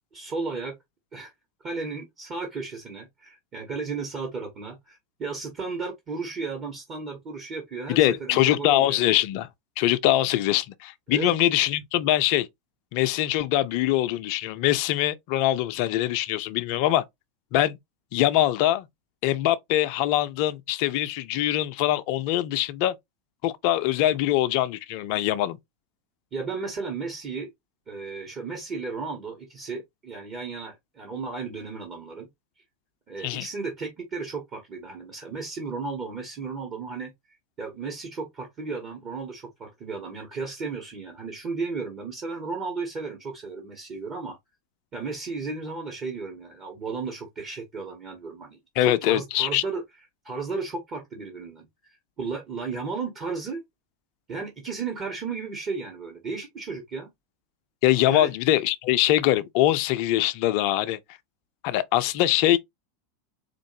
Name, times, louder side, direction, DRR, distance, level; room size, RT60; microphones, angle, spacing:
voice 1, 0.1-0.8 1.1-1.3 1.6-9.1 11.1-11.3 26.3-27.5 27.9-32.3 33.1-37.1 37.6-44.4 44.9-49.8 50.2-51.7 52.2-53.6 54.3-57.1 58.0-58.3, right 4 dB, 35° right, 1.2 m, -34 dB
voice 2, 7.9-9.5 9.8-12.5 12.9-17.0 17.5-17.8 18.1-18.9 19.2-22.9 23.4-25.6 33.2-33.5 48.8-49.6 57.8-61.0 61.6-62.6, left 13 dB, 50° left, 0.4 m, -23 dB
4.4 x 2.5 x 2.7 m
figure-of-eight pair, 85°, 0 cm